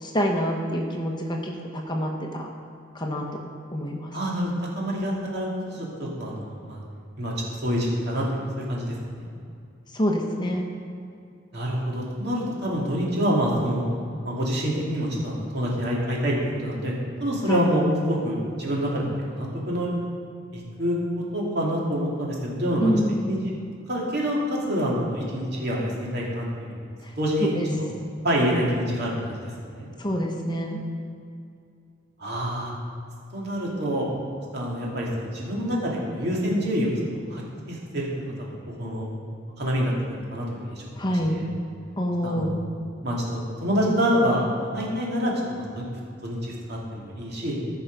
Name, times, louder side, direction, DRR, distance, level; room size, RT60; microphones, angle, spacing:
voice 1, 0.0-2.5 2.9-3.3 3.7-4.1 9.9-10.7 17.5-17.7 22.8-23.3 27.0-27.1 27.4-27.7 30.0-30.8 41.0-41.4 42.0-42.6, equal, 25° left, 1 dB, 1.0 m, -26 dB
voice 2, 4.1-6.8 7.2-7.3 7.6-9.3 11.5-13.8 14.2-16.4 16.6-16.9 17.2-19.9 20.5-22.9 23.3-23.5 23.9-26.8 27.2-27.9 28.2-29.4 29.7-29.9 32.2-32.7 33.3-34.1 34.5-39.1 39.6-41.4 42.2-42.5 43.0-45.9 46.2-47.6, equal, 60° right, -4 dB, 2.4 m, -27 dB
14.5 x 5.9 x 5.1 m, 2.4 s
head